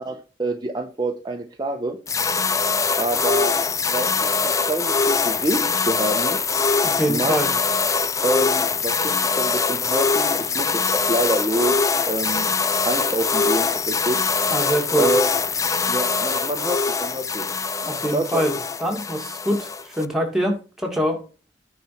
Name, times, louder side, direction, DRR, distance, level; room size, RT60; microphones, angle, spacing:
voice 1, 0.0-2.0 3.0-3.5 3.9-6.4 7.1-7.4 8.2-12.5 12.8-14.5 14.9-15.3 15.9-17.5 18.1-18.4, right 1 dB, 25° right, 1.0 m, -27 dB
sound 1, 2.1-20.1, left 4 dB, 20° left, 0.4 m, -23 dB
voice 2, 6.8-7.5 14.5-15.1 17.8-21.2, equal, 5° right, 2.3 m, -24 dB
9.4 x 4.5 x 5.8 m
head